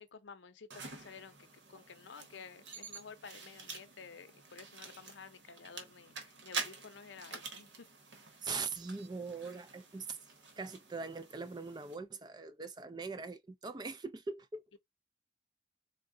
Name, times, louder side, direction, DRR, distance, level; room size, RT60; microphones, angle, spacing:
voice 1, 0.0-1.4 1.7-7.7, left 5 dB, 85° left, 0.6 m, -52 dB
sound 1, 0.7-11.9, right 4 dB, 80° right, 1.0 m, -47 dB
voice 2, 8.4-10.2 10.6-14.6, right 4 dB, 25° right, 0.3 m, -41 dB
3.7 x 2.1 x 3.7 m
head